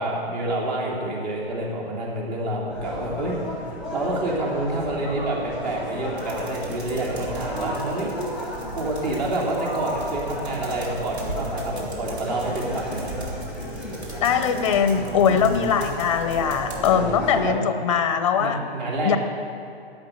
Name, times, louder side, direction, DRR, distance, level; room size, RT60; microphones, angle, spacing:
voice 1, 0.0-8.1 8.7-13.1 15.2-15.5 16.8-17.5 18.4-19.2, right 1 dB, 45° right, -3 dB, 3.2 m, -28 dB
sound 1, 2.7-17.6, equal, ahead, 1.2 m, -34 dB
sound 2, 6.2-16.9, right 2 dB, 90° right, 3.7 m, -39 dB
voice 2, 14.2-18.6 19.0-19.2, left 7 dB, 30° left, 9 dB, 0.7 m, -21 dB
11.5 x 8.4 x 9.1 m, 2.4 s
hypercardioid pair, 165°, 31 cm